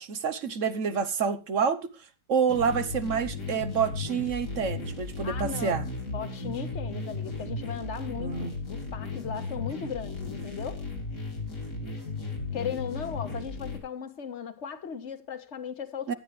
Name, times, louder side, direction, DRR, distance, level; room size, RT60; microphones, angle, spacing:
voice 1, 0.0-1.9 2.3-5.9 8.2-8.5 16.1-16.2, right 6 dB, 55° right, 1.2 m, -28 dB
sound 1, 2.5-13.8, left 3 dB, 80° left, 4.0 m, -35 dB
voice 2, 5.2-5.8 6.0-10.8 12.5-16.1, left 7 dB, 45° left, 1.5 m, -37 dB
16.0 x 11.0 x 3.2 m
omnidirectional pair, 1.7 m